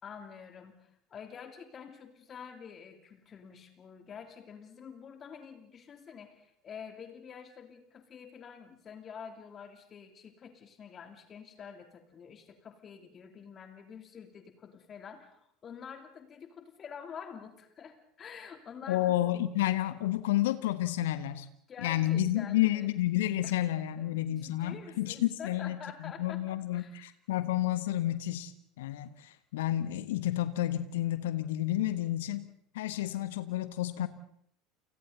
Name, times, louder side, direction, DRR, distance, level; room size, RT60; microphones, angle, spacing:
voice 1, 0.0-19.1 21.7-22.9 23.4-23.6 24.0-27.1, left 7 dB, 35° left, 6 dB, 3.1 m, -48 dB
voice 2, 18.9-21.5 21.8-25.8 26.2-32.4 32.7-34.1, left 14 dB, 65° left, 13 dB, 1.3 m, -30 dB
30.0 x 29.0 x 4.1 m, 0.69 s
figure-of-eight pair, 70°, 0 cm